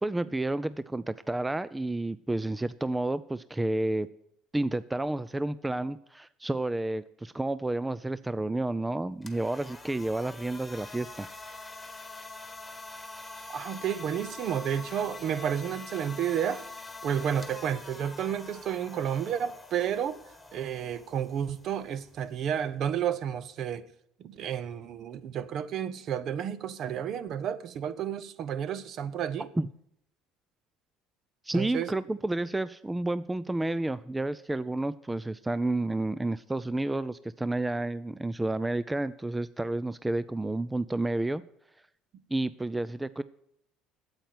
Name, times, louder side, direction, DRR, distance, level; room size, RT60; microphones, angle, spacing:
voice 1, 0.0-4.1 4.5-11.3 29.6-29.7 31.4-41.4 42.3-43.2, right 2 dB, 10° right, 0.4 m, -30 dB
sound 1, 9.1-23.2, left 3 dB, 10° left, 1.5 m, -45 dB
voice 2, 13.5-16.6 17.0-20.2 20.5-23.8 24.2-29.5 31.5-31.9, right 9 dB, 55° right, 0.8 m, -31 dB
8.9 x 8.0 x 9.1 m
supercardioid pair, 105°, 0 cm